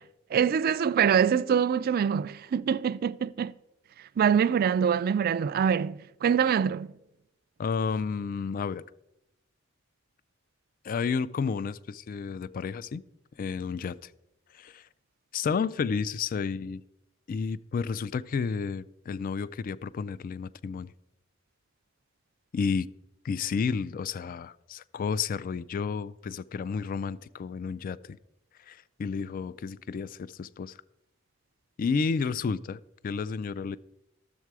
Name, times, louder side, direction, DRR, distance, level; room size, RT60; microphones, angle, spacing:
voice 1, 0.3-3.5 4.2-6.9, right 7 dB, 45° right, 0.3 m, -24 dB
voice 2, 7.6-8.8 10.8-13.0 13.4-14.1 14.5-14.9 15.3-16.8 17.3-20.9 22.5-22.9 23.2-28.2 28.6-30.8 31.8-33.8, left 5 dB, 45° left, 0.3 m, -31 dB
12.5 x 7.4 x 4.7 m
head